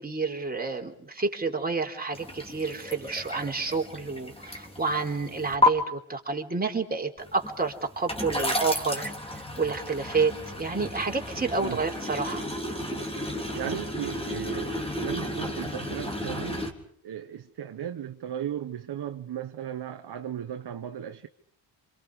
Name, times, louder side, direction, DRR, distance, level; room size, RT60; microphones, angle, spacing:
voice 1, 0.0-9.1 9.6-12.5, right 4 dB, 20° right, 3.8 m, -29 dB
sound 1, 2.1-5.7 7.2-16.7, left 1 dB, 10° left, 3.6 m, -32 dB
voice 2, 13.5-16.7 17.0-21.3, right 10 dB, 50° right, 1.4 m, -36 dB
27.5 x 26.5 x 5.0 m
cardioid pair, 90°, 49 cm